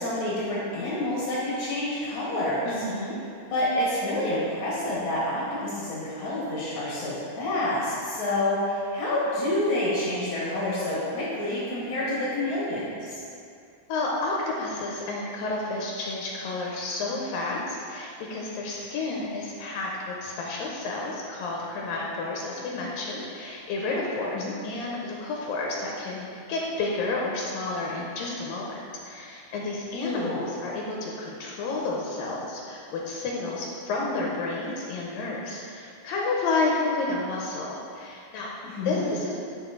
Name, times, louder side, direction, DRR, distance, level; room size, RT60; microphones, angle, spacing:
voice 1, 0.0-2.7 3.5-13.1 24.3-24.5 30.0-30.5 38.6-39.1, left 1 dB, 50° left, -8 dB, 1.7 m, -28 dB
voice 2, 2.6-3.2 13.9-38.5 38.8-39.4, left 3 dB, 80° left, -2 dB, 2.4 m, -31 dB
9.9 x 5.1 x 3.8 m, 2.4 s
omnidirectional pair, 4.2 m